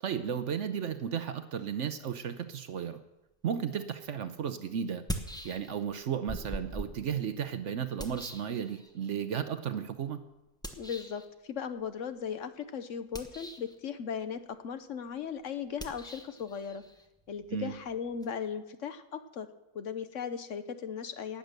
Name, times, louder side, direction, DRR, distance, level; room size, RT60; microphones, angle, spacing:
voice 1, 0.0-3.0 3.4-5.0 5.4-10.2 17.5-17.7, right 8 dB, 60° right, 10 dB, 1.0 m, -34 dB
sound 1, 5.1-5.9 6.3-9.1 10.6-11.3 13.0-13.8 15.7-18.3, equal, 5° left, 0.9 m, -42 dB
voice 2, 10.8-16.8 17.3-19.5 19.7-21.4, left 7 dB, 60° left, 10 dB, 1.1 m, -37 dB
18.5 x 7.8 x 6.7 m, 1.0 s
omnidirectional pair, 1.6 m